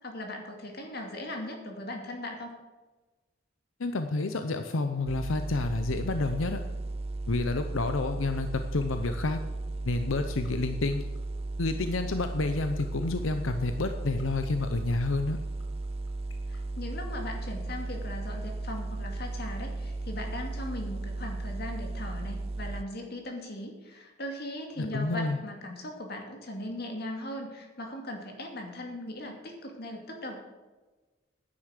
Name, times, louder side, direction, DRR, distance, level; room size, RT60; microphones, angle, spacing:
voice 1, 0.0-2.5 16.5-30.4, left 1 dB, 50° left, 2 dB, 2.3 m, -39 dB
voice 2, 3.8-6.6 7.3-9.4 9.8-11.0 11.6-15.4 24.8-25.4, left 3 dB, 90° left, 8 dB, 0.8 m, -29 dB
sound 1, 5.1-22.8, right 2 dB, 30° right, 0.4 m, -35 dB
sound 2, 8.3-17.5, left 6 dB, 75° left, 1.8 m, -57 dB
10.0 x 9.5 x 6.6 m, 1.2 s
head